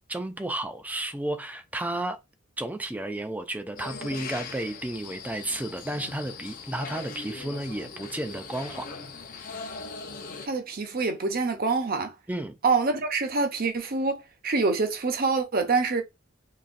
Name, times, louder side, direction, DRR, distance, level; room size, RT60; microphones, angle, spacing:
voice 1, 0.1-2.2 2.6-8.9 12.3-12.5, right 1 dB, 10° right, 0.4 m, -32 dB
sound 1, 3.8-10.5, left 4 dB, 45° left, 0.7 m, -40 dB
voice 2, 10.5-12.1 12.6-16.0, right 4 dB, 45° right, 0.7 m, -26 dB
4.1 x 2.9 x 2.5 m
head